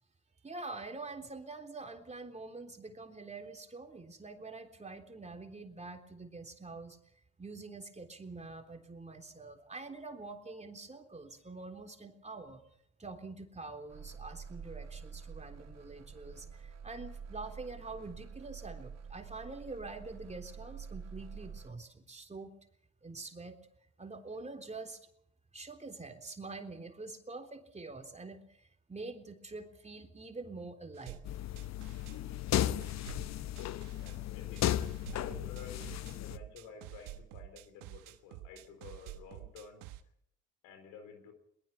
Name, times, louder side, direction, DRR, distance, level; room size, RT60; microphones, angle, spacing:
voice 1, 0.4-7.0 7.4-12.6 13.0-22.5 23.0-23.6 24.0-25.0 25.5-31.2 32.2-32.4 33.4-33.5, right 3 dB, 20° right, 4 dB, 3.6 m, -46 dB
sound 1, 13.9-21.7, right 6 dB, 60° right, 1.7 m, -48 dB
sound 2, 30.9-32.2 32.6-34.2 34.6-40.0, right 14 dB, 85° right, 1.4 m, -49 dB
sound 3, 31.3-36.4, left 12 dB, 60° left, 0.8 m, -35 dB
voice 2, 33.6-34.7 35.1-39.8 40.6-41.3, left 5 dB, 85° left, 7 dB, 4.3 m, -52 dB
22.0 x 20.0 x 5.9 m, 0.71 s
supercardioid pair, 65°, 31 cm